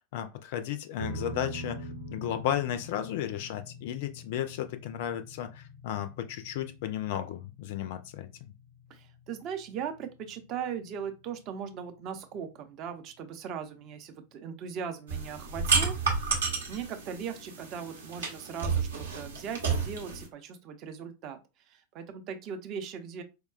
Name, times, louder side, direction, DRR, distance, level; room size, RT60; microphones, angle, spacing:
voice 1, 0.1-8.3, left 11 dB, 50° left, 0.3 m, -34 dB
sound 1, 1.0-13.5, equal, 90° right, 1.0 m, -46 dB
voice 2, 8.9-15.9 16.7-21.4 21.7-23.2, right 7 dB, 35° right, 0.5 m, -39 dB
sound 2, 15.1-20.3, right 5 dB, 70° right, 0.8 m, -31 dB
4.6 x 2.2 x 2.3 m
figure-of-eight pair, 90°, 0 cm